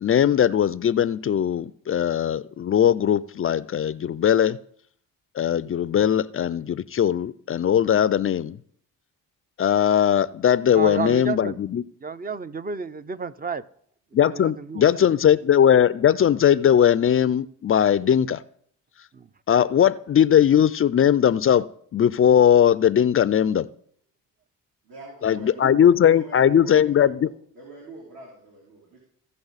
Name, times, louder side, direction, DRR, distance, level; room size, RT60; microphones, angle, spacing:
voice 1, 0.0-4.6 5.4-8.6 9.6-11.8 14.1-18.4 19.5-21.7 21.9-23.7 25.2-27.3, left 9 dB, 35° left, 0.4 m, -19 dB
voice 2, 10.7-11.6 12.0-13.6 14.2-15.1 19.1-19.3, right 5 dB, 25° right, 0.5 m, -31 dB
voice 3, 24.8-27.3 27.6-29.0, right 3 dB, 65° right, 3.4 m, -42 dB
16.0 x 5.5 x 4.0 m
supercardioid pair, 70°, 38 cm